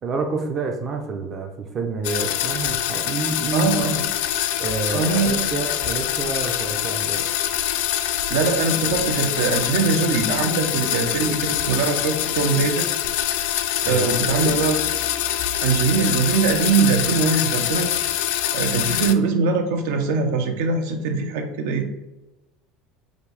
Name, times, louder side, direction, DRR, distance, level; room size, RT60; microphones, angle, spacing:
voice 1, 0.0-3.7 4.6-7.3 13.8-14.5, right 4 dB, 25° right, 2 dB, 0.4 m, -28 dB
sound 1, 2.0-19.1, left 11 dB, 75° left, 0.3 m, -24 dB
voice 2, 3.5-4.0 4.9-5.3 8.3-12.9 13.9-14.8 15.6-17.9 18.5-21.9, right 5 dB, 75° right, 6 dB, 0.6 m, -22 dB
5.1 x 2.6 x 3.2 m, 1.0 s
cardioid pair, 170°, 0 cm